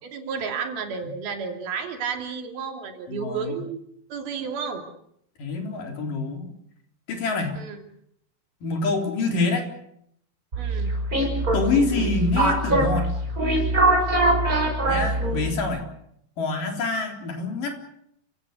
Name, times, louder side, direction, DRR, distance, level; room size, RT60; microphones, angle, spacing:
voice 1, 0.0-3.8 4.1-4.8 7.5-7.8 10.6-10.9, right 6 dB, 85° right, 4 dB, 4.8 m, -32 dB
voice 2, 3.1-3.6 5.4-6.5 7.1-7.6 8.6-9.7 11.5-13.1 14.9-15.8 16.4-17.8, left 3 dB, 65° left, 3 dB, 5.3 m, -26 dB
sound 1, 10.5-15.6, right 1 dB, 20° right, 6.0 m, -22 dB
29.0 x 17.5 x 8.2 m, 0.72 s
omnidirectional pair, 4.2 m